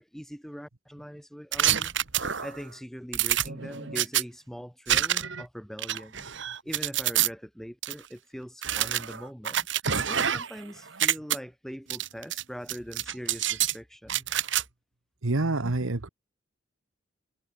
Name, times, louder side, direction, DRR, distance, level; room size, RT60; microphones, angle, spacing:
voice 1, 0.0-1.9 2.4-6.3 6.6-9.7 10.1-14.2, equal, ahead, 4.9 m, -42 dB
sound 1, 1.5-2.6 3.1-4.2 4.9-5.4 5.8-7.3 7.8-7.9 8.6-10.6 10.9-11.4 11.9-12.4 12.7-13.7 14.1-14.6, right 10 dB, 65° right, 1.6 m, -27 dB
voice 2, 15.2-16.1, right 2 dB, 90° right, 1.3 m, -27 dB
head